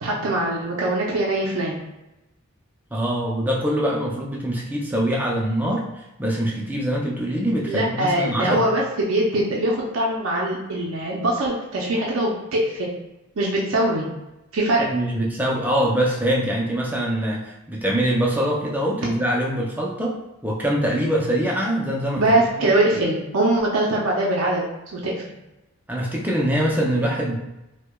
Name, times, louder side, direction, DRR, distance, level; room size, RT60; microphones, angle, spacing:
voice 1, 0.0-1.8 7.7-12.9 13.4-14.1 14.5-14.9 22.2-24.6 24.9-25.2, right 1 dB, 70° right, -3 dB, 0.5 m, -22 dB
voice 2, 2.9-5.8 6.2-8.6 14.9-20.2 20.4-22.2 22.6-22.7 25.9-27.3, equal, 10° right, -2 dB, 0.4 m, -23 dB
4.6 x 2.2 x 2.2 m, 0.93 s
head